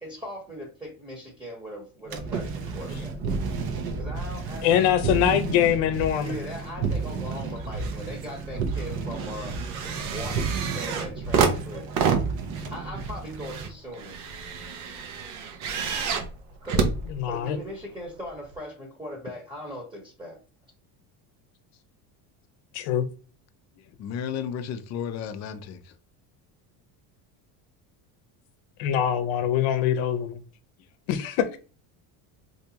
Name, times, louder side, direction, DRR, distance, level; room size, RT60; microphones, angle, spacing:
voice 1, 0.0-3.2 4.0-4.7 6.2-9.6 10.1-11.9 12.7-14.3 16.6-20.4, equal, 10° right, 1.0 m, -39 dB
sound 1, 2.1-13.7, right 4 dB, 55° right, 0.7 m, -32 dB
voice 2, 4.6-6.3 17.1-17.6 22.7-23.1 28.8-30.4 31.1-31.6, left 10 dB, 80° left, 0.7 m, -23 dB
sound 2, 7.3-8.0 8.3-17.7 18.5-18.6, right 5 dB, 85° right, 0.8 m, -29 dB
voice 3, 24.0-25.9, left 8 dB, 40° left, 0.5 m, -33 dB
3.5 x 2.7 x 2.8 m
cardioid pair, 120°, 45 cm